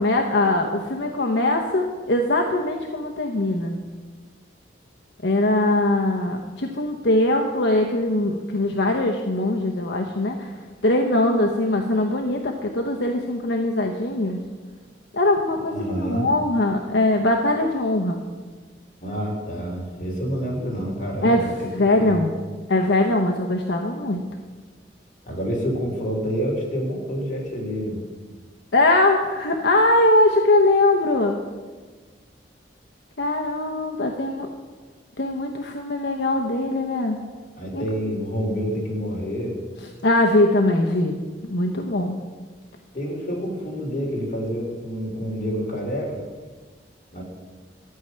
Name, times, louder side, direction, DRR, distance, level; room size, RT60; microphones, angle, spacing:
voice 1, 0.0-3.8 5.2-10.5 10.8-14.4 15.1-18.2 21.2-22.3 22.7-24.2 28.7-31.4 33.2-34.5 35.2-37.2 37.7-37.8 40.0-41.2 41.4-42.2, left 2 dB, 75° left, 2 dB, 0.9 m, -21 dB
voice 2, 15.6-16.3 19.0-21.5 21.8-22.2 25.3-28.0 37.6-39.5 42.9-46.2 47.1-47.2, equal, 45° left, -2 dB, 3.3 m, -28 dB
12.5 x 5.7 x 9.3 m, 1.4 s
head